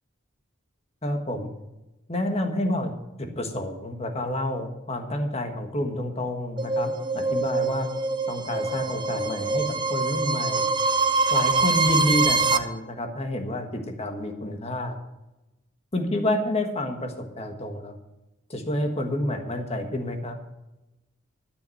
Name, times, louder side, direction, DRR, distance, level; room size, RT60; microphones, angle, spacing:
voice 1, 1.0-1.5 2.1-2.9 3.2-7.9 8.3-10.7 11.3-15.0 15.9-18.0 18.5-20.4, left 1 dB, 30° left, 5 dB, 1.5 m, -29 dB
sound 1, 6.6-12.6, right 3 dB, 25° right, 0.7 m, -24 dB
12.5 x 7.0 x 7.7 m, 0.99 s
head